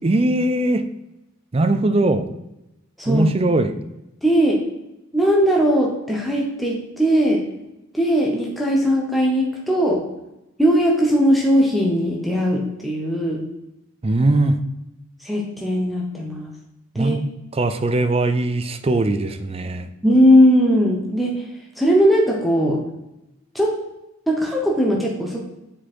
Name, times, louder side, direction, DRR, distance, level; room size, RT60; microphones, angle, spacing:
voice 1, 0.0-0.8 1.5-2.3 3.1-3.7 14.0-14.6 17.0-17.2 17.5-19.9, right 2 dB, 25° right, 9 dB, 0.4 m, -20 dB
voice 2, 3.0-3.3 4.2-4.6 5.1-7.4 7.9-10.0 10.6-13.4 15.2-16.5 16.9-17.2 20.0-21.4 21.8-22.8 23.5-23.7 24.3-25.4, equal, ahead, -2 dB, 0.9 m, -18 dB
7.1 x 4.5 x 4.4 m, 0.92 s
head